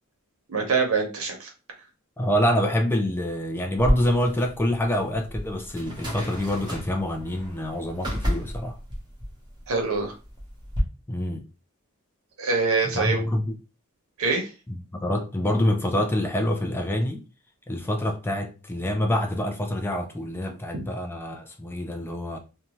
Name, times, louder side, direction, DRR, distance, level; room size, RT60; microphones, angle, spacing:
voice 1, 0.5-1.5 9.7-10.1 12.4-13.2 14.2-14.5, right 4 dB, 70° right, 0.9 m, -24 dB
voice 2, 2.2-8.8 11.1-11.4 12.9-13.6 14.7-17.2 17.7-22.4, left 1 dB, 10° left, 0.3 m, -26 dB
sound 1, 3.8-10.8, equal, 20° right, 0.9 m, -31 dB
2.6 x 2.2 x 2.9 m
head